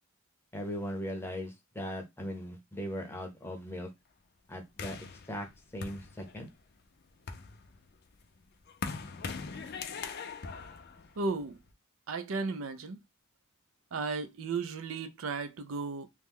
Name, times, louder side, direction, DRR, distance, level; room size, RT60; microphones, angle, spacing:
voice 1, 0.5-3.9 4.5-5.0 5.3-5.5 5.7-6.5, equal, 10° left, 0.7 m, -38 dB
sound 1, 4.8-6.6 7.1-11.7, left 5 dB, 50° left, 0.5 m, -42 dB
voice 2, 11.2-11.6 12.1-13.0 13.9-16.1, right 4 dB, 70° right, 0.4 m, -34 dB
3.0 x 2.1 x 3.5 m
head